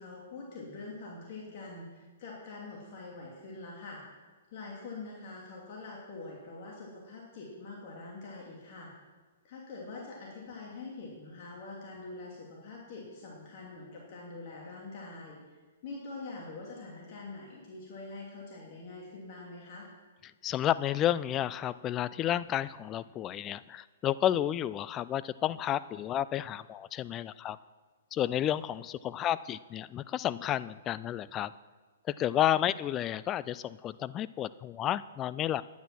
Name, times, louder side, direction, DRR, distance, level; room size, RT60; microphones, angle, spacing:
voice 1, 0.0-4.0 4.5-8.9 9.4-15.4 15.8-19.9, left 3 dB, 50° left, -3 dB, 2.7 m, -44 dB
voice 2, 20.2-27.6 28.1-31.5 32.1-35.6, left 11 dB, 25° left, 16 dB, 0.3 m, -31 dB
10.5 x 9.5 x 6.0 m, 1.3 s
hypercardioid pair, 130°, 0 cm